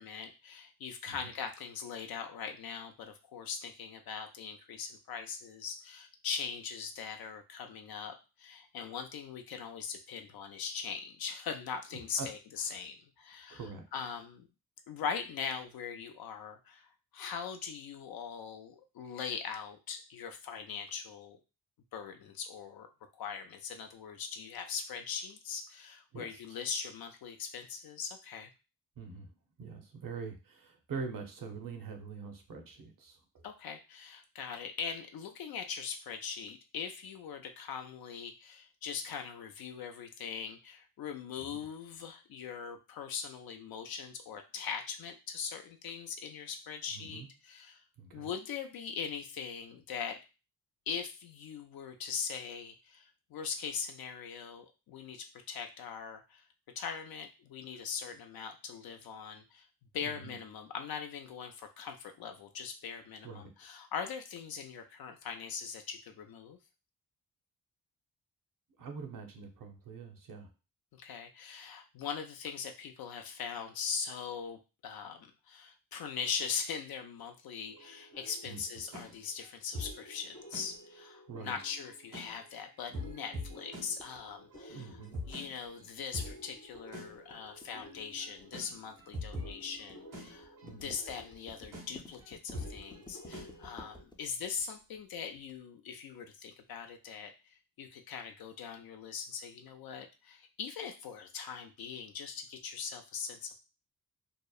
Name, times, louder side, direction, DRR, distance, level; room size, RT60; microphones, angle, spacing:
voice 1, 0.0-14.5 14.9-21.4 21.9-22.9 23.1-28.5 33.4-47.8 48.1-50.2 50.9-56.5 56.8-59.7 59.9-66.6 70.9-103.6, left 6 dB, 65° left, 6 dB, 0.5 m, -41 dB
voice 2, 13.5-13.8 26.1-26.4 29.0-29.3 29.6-33.4 41.5-41.6 46.9-47.3 48.0-48.3 60.0-60.3 63.2-63.5 68.8-70.5 78.5-78.6 81.3-81.6 84.7-85.2 90.6-90.9, right 5 dB, 55° right, 5 dB, 0.7 m, -44 dB
sound 1, 77.6-94.0, left 1 dB, 75° right, 1.2 m, -46 dB
sound 2, 84.0-95.5, left 2 dB, 10° left, 0.4 m, -54 dB
2.8 x 2.0 x 2.3 m, 0.30 s
cardioid pair, 65°, 39 cm